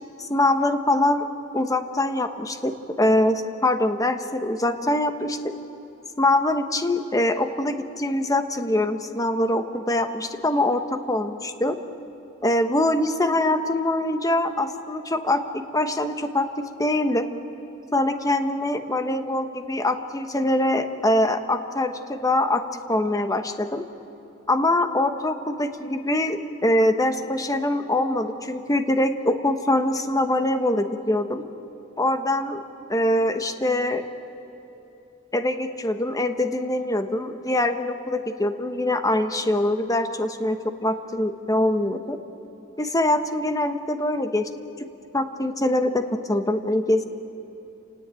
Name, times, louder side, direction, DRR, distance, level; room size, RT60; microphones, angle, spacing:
voice 1, 0.2-1.3 1.5-2.7 3.0-5.5 6.2-11.8 12.4-16.5 16.8-17.3 17.9-22.6 22.9-23.8 24.5-31.4 32.0-32.6 32.9-34.0 35.3-42.2 42.8-44.5 45.1-47.0, left 1 dB, 15° left, 8 dB, 1.2 m, -23 dB
29.5 x 18.0 x 9.0 m, 2.9 s
head